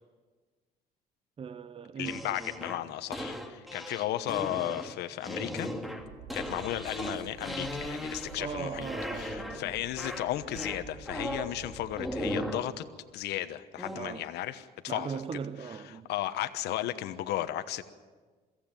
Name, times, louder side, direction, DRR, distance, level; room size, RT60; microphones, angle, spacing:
voice 1, 1.4-2.4 6.5-6.7 8.4-9.8 13.9-14.3 14.9-16.1, right 6 dB, 35° right, 0.8 m, -39 dB
voice 2, 2.0-5.7 6.3-8.9 9.1-12.8 13.1-15.4 15.8-17.8, left 13 dB, 80° left, 1.2 m, -35 dB
sound 1, 2.0-8.5 8.8-9.7 10.0-11.5 11.9-12.7 13.8-14.0, equal, ahead, 2.3 m, -37 dB
sound 2, 6.0-12.1, right 4 dB, 80° right, 5.9 m, -49 dB
22.5 x 15.5 x 9.1 m
cardioid pair, 110°, 17 cm